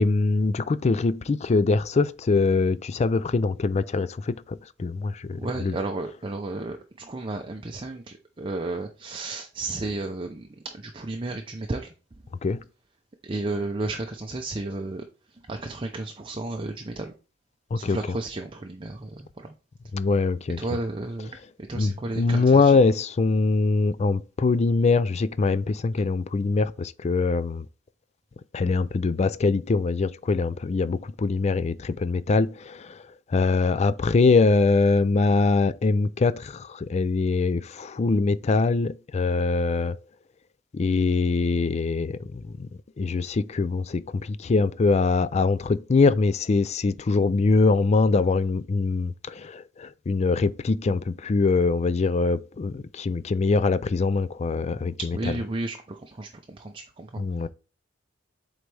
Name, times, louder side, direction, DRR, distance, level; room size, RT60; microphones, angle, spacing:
voice 1, 0.0-5.8 12.4-12.6 17.7-18.0 19.9-20.6 21.7-27.7 28.5-33.0 33.3-40.0 40.7-42.5 43.0-55.0 57.2-57.5, left 3 dB, 35° left, 0.4 m, -23 dB
voice 2, 5.3-11.9 13.2-15.1 15.3-17.1 17.7-19.5 20.6-21.4 21.7-22.8 55.0-57.2, right 2 dB, 25° right, 0.6 m, -33 dB
7.9 x 4.0 x 3.3 m
head